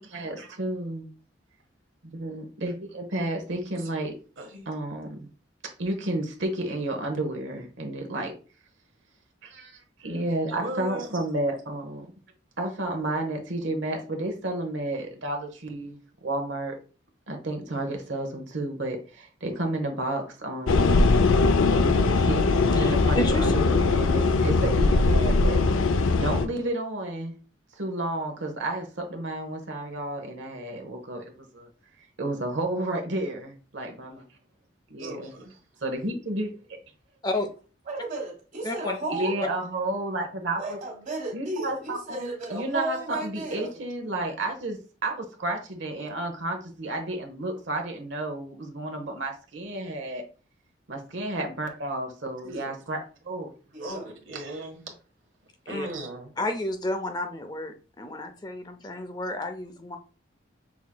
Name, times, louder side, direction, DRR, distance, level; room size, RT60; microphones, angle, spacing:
voice 1, 0.0-1.1 2.0-4.1 4.7-5.3 5.8-8.3 9.4-12.1 12.6-16.8 17.3-20.9 21.7-25.6 26.1-27.3 27.8-31.7 32.2-34.2 34.9-35.3 35.8-36.5 39.1-40.8 41.3-50.2 50.9-53.5, right 1 dB, 70° right, 0.9 m, -31 dB
voice 2, 4.4-4.7 10.6-11.1 35.0-35.6 52.4-52.7 53.8-54.0 54.3-54.8 55.7-56.3, right 1 dB, 90° right, 1.4 m, -37 dB
sound 1, 20.7-26.5, left 3 dB, 90° left, 0.5 m, -21 dB
voice 3, 22.7-23.6 37.2-37.5 38.6-39.0 55.7-55.9 56.4-60.0, left 1 dB, 20° left, 0.5 m, -31 dB
voice 4, 37.9-39.4 40.6-43.7 53.7-54.1, right 2 dB, 40° right, 1.5 m, -33 dB
6.1 x 3.6 x 2.2 m
head